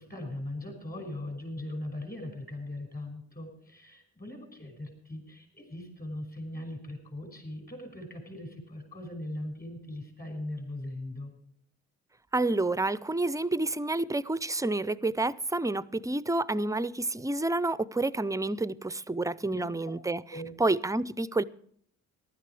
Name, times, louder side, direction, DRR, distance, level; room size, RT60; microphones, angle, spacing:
voice 1, 0.0-11.3 19.5-19.9 20.3-20.5, left 1 dB, 30° left, 5.6 m, -40 dB
voice 2, 12.3-20.2 20.6-21.4, right 2 dB, 10° right, 0.4 m, -29 dB
15.0 x 11.5 x 4.8 m
cardioid pair, 90°, 30 cm